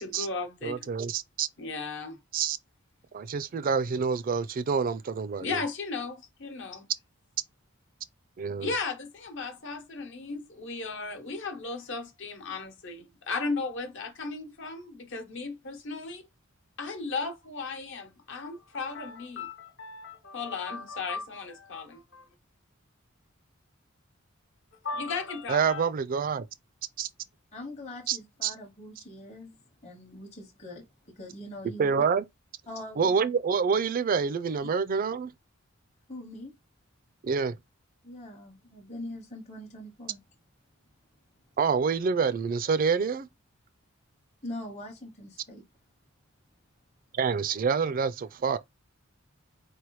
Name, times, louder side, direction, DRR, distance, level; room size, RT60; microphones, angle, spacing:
voice 1, 0.0-0.9 1.6-2.2 5.4-6.8 8.6-16.3 16.8-22.3 24.8-25.9, left 4 dB, 65° left, 1.0 m, -35 dB
voice 2, 0.6-1.5 2.3-2.6 3.1-5.6 8.4-8.7 25.5-26.4 27.0-27.1 28.1-28.5 31.8-32.2 33.0-35.3 37.2-37.6 41.6-43.3 47.1-48.6, right 5 dB, 45° right, 0.4 m, -27 dB
voice 3, 27.5-32.0 32.7-33.2 36.1-36.6 38.0-40.2 44.4-45.6, left 1 dB, 35° left, 0.9 m, -42 dB
4.2 x 3.2 x 3.1 m
head